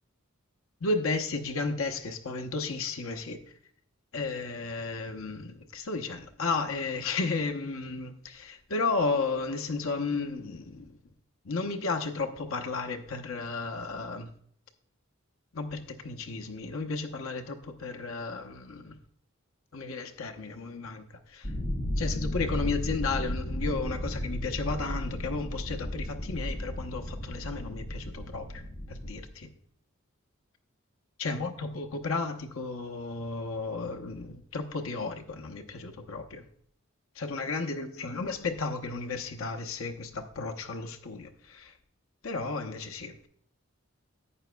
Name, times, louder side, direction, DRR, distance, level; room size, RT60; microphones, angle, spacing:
voice 1, 0.8-3.4 4.1-10.9 11.4-14.3 15.5-19.0 19.7-21.5 22.0-28.6 28.9-29.5 31.2-36.5 37.2-41.7 42.2-43.1, left 3 dB, 75° left, 0.8 m, -33 dB
sound 1, 21.4-29.2, equal, 45° left, 1.1 m, -34 dB
11.0 x 8.1 x 2.2 m
head